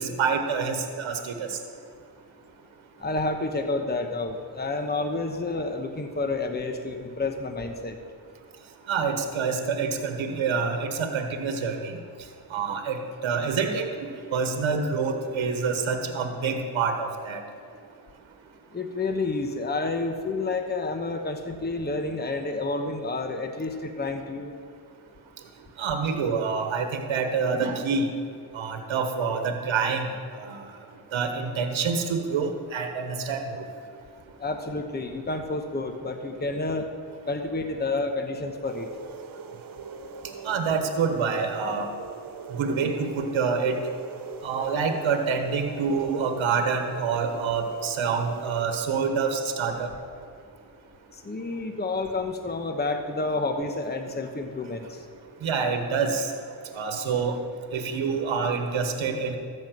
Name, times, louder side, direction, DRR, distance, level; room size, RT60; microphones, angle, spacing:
voice 1, 0.0-1.6 8.9-12.0 12.5-17.4 25.8-28.1 28.5-30.1 30.4-30.6 31.1-33.5 40.4-41.9 42.5-43.9 44.4-49.9 55.4-56.3 56.7-57.4 57.7-59.4, right 5 dB, 80° right, 6 dB, 1.2 m, -27 dB
voice 2, 3.0-8.0 18.7-24.5 34.4-36.9 37.3-38.9 51.1-55.0, left 3 dB, 20° left, 6 dB, 1.0 m, -29 dB
sound 1, 38.6-48.6, right 5 dB, 45° right, 0.9 m, -41 dB
13.5 x 5.5 x 7.6 m, 2.3 s
cardioid pair, 65°, 47 cm